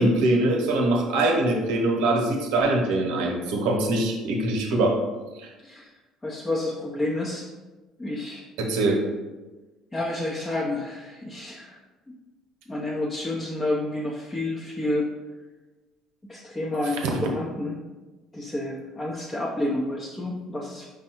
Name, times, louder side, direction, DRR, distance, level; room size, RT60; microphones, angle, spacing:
voice 1, 0.0-5.0 5.4-5.5 8.6-9.0, right 2 dB, 85° right, 0 dB, 0.9 m, -23 dB
voice 2, 6.2-7.5 8.0-8.4 9.9-11.8 12.7-15.1 16.3-17.8 18.3-20.8, left 1 dB, 15° left, -5 dB, 0.7 m, -29 dB
5.2 x 2.3 x 4.4 m, 1.2 s
cardioid pair, 105°, 0 cm